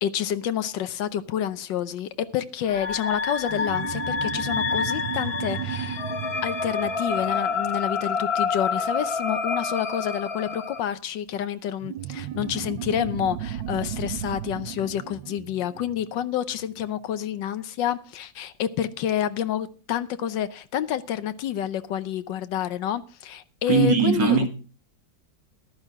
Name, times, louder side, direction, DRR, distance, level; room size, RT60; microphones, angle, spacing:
voice 1, 0.0-6.0 6.4-24.4, left 10 dB, 75° left, 1.4 m, -28 dB
sound 1, 2.7-10.8, left 5 dB, 40° left, 1.1 m, -28 dB
sound 2, 3.5-8.4 11.8-16.7, right 10 dB, 85° right, 1.6 m, -35 dB
voice 2, 23.7-24.5, right 5 dB, 70° right, 2.1 m, -19 dB
14.5 x 12.0 x 3.5 m
omnidirectional pair, 2.0 m